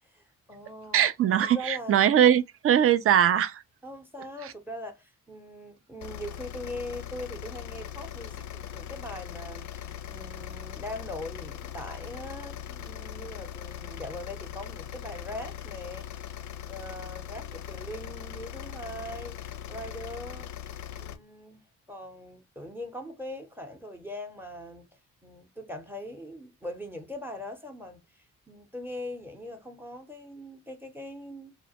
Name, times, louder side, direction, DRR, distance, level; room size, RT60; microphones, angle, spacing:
voice 1, 0.1-1.0 1.4-2.0 3.8-16.3 16.7-19.4 19.7-20.5 20.9-21.6 21.9-24.9 25.2-31.6, left 1 dB, 5° right, 0.8 m, -41 dB
voice 2, 0.9-3.6, right 10 dB, 40° right, 0.4 m, -21 dB
sound 1, 6.0-21.2, left 10 dB, 50° left, 0.5 m, -40 dB
2.1 x 2.1 x 2.7 m
hypercardioid pair, 45°, 36 cm